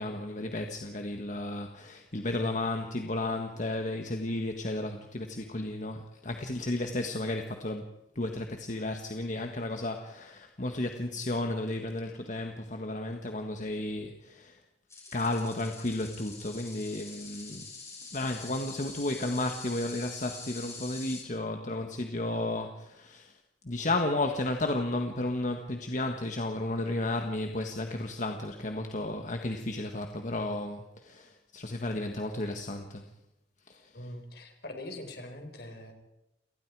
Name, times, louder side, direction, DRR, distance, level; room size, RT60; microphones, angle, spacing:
voice 1, 0.0-14.6 15.1-17.7 18.1-23.4 23.6-33.0 33.7-33.9, left 2 dB, 45° left, 4 dB, 1.6 m, -33 dB
sound 1, 14.9-21.2, left 4 dB, 15° left, 6.0 m, -45 dB
voice 2, 33.9-35.9, left 1 dB, 65° left, 5 dB, 4.5 m, -42 dB
29.5 x 19.0 x 4.8 m, 0.90 s
head